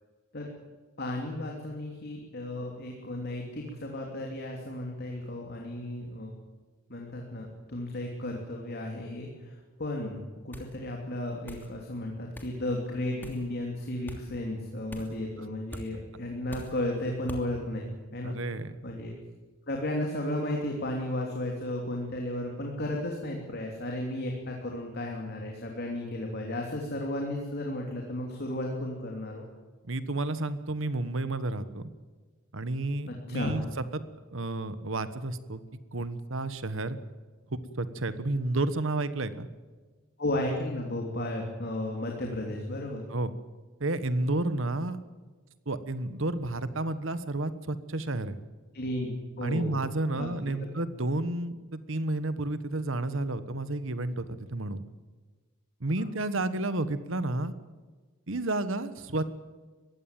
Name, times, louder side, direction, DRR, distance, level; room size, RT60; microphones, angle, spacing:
voice 1, 1.0-6.3 6.9-10.2 10.4-18.4 18.8-19.1 19.7-29.5 33.1-33.6 40.2-43.0 48.7-49.7 50.1-50.4, left 1 dB, 50° left, 1 dB, 3.1 m, -34 dB
sound 1, 10.5-10.8 11.5-11.7 12.3-12.5 13.2-13.5 14.1-14.2 14.9-15.2 15.7-15.9 16.5-16.8 17.3-17.5, equal, 10° left, 2.8 m, -42 dB
voice 2, 18.2-18.7 29.9-31.9 32.5-33.6 33.9-34.0 34.3-35.6 35.9-37.0 37.5-39.5 43.1-43.3 43.8-45.0 45.7-48.4 49.4-54.8 55.8-57.5 58.3-59.2, right 2 dB, 65° right, 13 dB, 1.4 m, -31 dB
22.0 x 16.0 x 9.2 m, 1.3 s
head